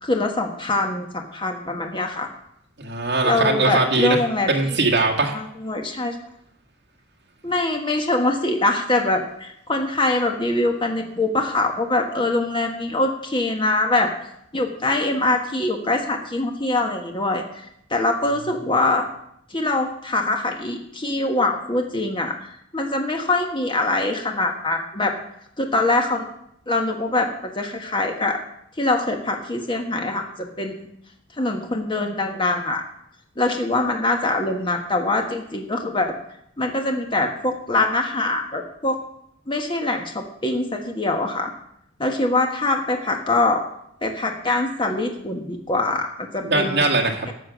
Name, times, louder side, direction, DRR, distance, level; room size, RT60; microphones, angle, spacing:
voice 1, 0.0-2.3 3.2-4.8 5.3-6.1 7.4-14.1 14.5-17.6 17.9-19.1 19.5-22.3 22.7-25.1 25.6-26.3 26.7-28.4 28.8-30.3 30.6-30.9 31.4-32.8 33.4-36.1 36.6-39.0 39.5-41.5 42.0-43.6 44.0-46.8 47.2-47.3, left 2 dB, 25° left, 3 dB, 1.4 m, -23 dB
voice 2, 2.8-4.2 4.5-5.4 46.4-47.3, right 3 dB, 60° right, 1 dB, 1.7 m, -20 dB
13.0 x 7.5 x 6.2 m, 0.74 s
head